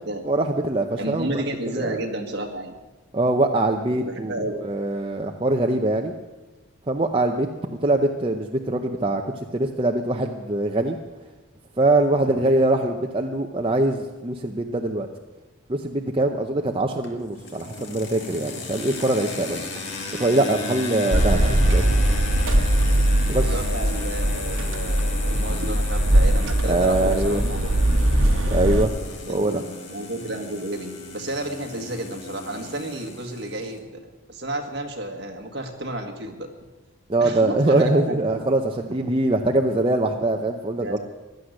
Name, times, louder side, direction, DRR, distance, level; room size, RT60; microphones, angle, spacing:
voice 1, 0.2-1.4 1.8-2.0 3.1-4.3 4.7-6.1 6.9-7.5 7.8-11.0 11.8-15.1 15.7-19.6 20.2-21.9 23.3-23.5 26.7-27.4 28.5-28.9 29.3-29.6 37.1-41.0, right 2 dB, 25° right, 3 dB, 0.6 m, -23 dB
voice 2, 1.0-2.7 3.9-4.6 20.9-21.1 23.4-27.8 29.3-34.0 34.3-36.5 37.2-38.5 40.8-41.0, right 1 dB, 55° right, 3 dB, 1.7 m, -32 dB
sound 1, 17.0-33.8, left 3 dB, 60° left, 2.2 m, -36 dB
sound 2, 21.1-28.8, right 1 dB, 70° right, 1.4 m, -21 dB
15.5 x 11.5 x 6.4 m, 1.2 s
head